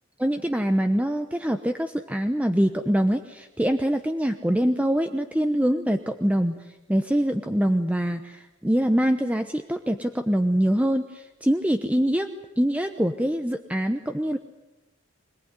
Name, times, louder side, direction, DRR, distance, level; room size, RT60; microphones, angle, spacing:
voice 1, 0.2-6.6 6.9-12.3 12.6-14.4, equal, 5° right, 6 dB, 0.9 m, -24 dB
25.5 x 19.0 x 9.7 m, 1.0 s
head